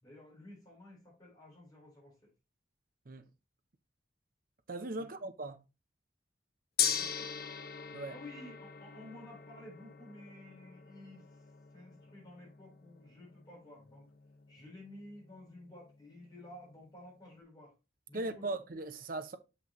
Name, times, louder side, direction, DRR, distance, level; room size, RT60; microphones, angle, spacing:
voice 1, 0.0-2.3 5.0-5.1 6.9-7.3 8.1-11.3 11.7-14.1 14.5-17.7 18.1-18.5, left 1 dB, 20° left, 3.8 m, -53 dB
voice 2, 4.7-5.6 7.9-8.1 18.1-19.4, right 2 dB, 50° right, 0.6 m, -39 dB
Gong, 6.8-17.0, left 8 dB, 55° left, 0.7 m, -41 dB
6.1 x 5.9 x 3.0 m
head